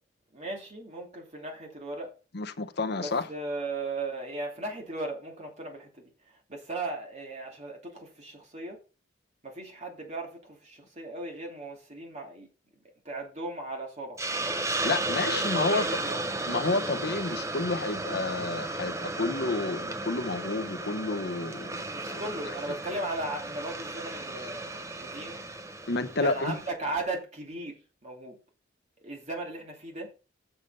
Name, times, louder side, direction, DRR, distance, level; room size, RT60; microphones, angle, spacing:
voice 1, 0.3-2.1 3.0-8.8 9.4-12.5 12.8-14.2 15.2-16.2 21.9-25.4 26.2-28.4 29.0-30.1, right 2 dB, 35° right, 2.6 m, -37 dB
voice 2, 2.3-3.3 14.8-15.9 16.5-21.8 22.1-22.2 25.9-26.6, left 3 dB, 55° left, 0.9 m, -30 dB
Hiss, 14.2-26.7, right 2 dB, 15° right, 0.7 m, -34 dB
7.0 x 6.7 x 5.4 m
head